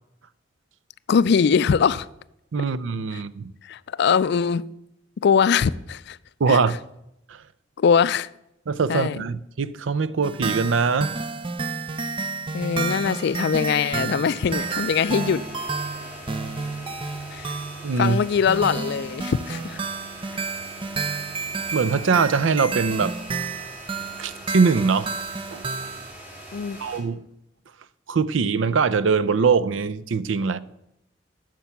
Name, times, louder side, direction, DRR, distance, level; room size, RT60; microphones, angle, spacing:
voice 1, 1.1-2.1 3.1-3.2 3.6-4.7 5.2-6.2 6.5-6.6 7.8-8.3 8.9-9.2 12.5-15.4 17.3-17.6 18.0-19.8 26.5-26.8, left 6 dB, 60° left, 0.4 m, -22 dB
voice 2, 2.5-3.5 6.4-6.8 7.3-7.4 8.7-11.1 17.8-18.2 21.7-23.2 24.2-25.2 25.5-25.6 26.8-27.3 28.1-30.6, right 5 dB, 85° right, 0.5 m, -22 dB
sound 1, 10.2-26.1, right 4 dB, 30° right, 0.5 m, -31 dB
Harp, 12.3-17.6, left 4 dB, 30° left, 1.1 m, -46 dB
sound 2, 14.4-27.0, right 1 dB, 10° right, 2.5 m, -42 dB
8.9 x 6.2 x 6.9 m
head